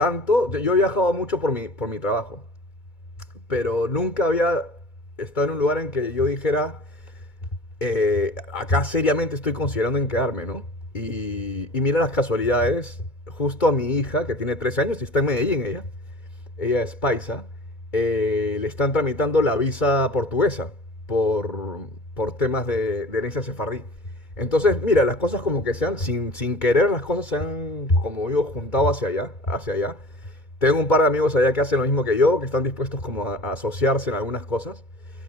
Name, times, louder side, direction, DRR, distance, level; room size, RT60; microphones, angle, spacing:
voice 1, 0.0-2.4 3.5-4.7 5.2-6.8 7.8-10.7 10.9-15.9 16.6-17.5 17.9-20.7 21.1-23.9 24.4-30.3 30.6-34.8, left 1 dB, 30° left, 4.0 m, -23 dB
omnidirectional pair, 1.6 m